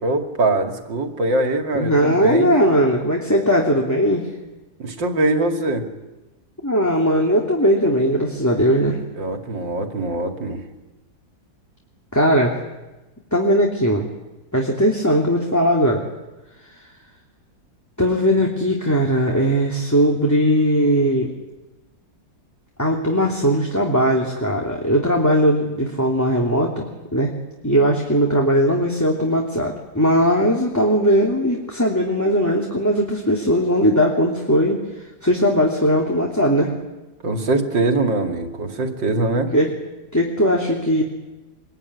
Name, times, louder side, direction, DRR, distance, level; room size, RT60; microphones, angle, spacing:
voice 1, 0.0-2.6 4.8-5.9 9.1-10.6 37.2-39.5, right 2 dB, 80° right, 4 dB, 3.3 m, -22 dB
voice 2, 1.7-4.3 6.6-9.0 12.1-12.5 13.3-14.1 14.5-16.0 18.0-21.3 22.8-26.8 27.1-27.3 27.6-34.8 35.2-36.7 39.5-39.7 40.1-41.0, equal, 10° left, -1 dB, 3.0 m, -19 dB
25.5 x 21.5 x 9.8 m, 1.1 s
omnidirectional pair, 2.0 m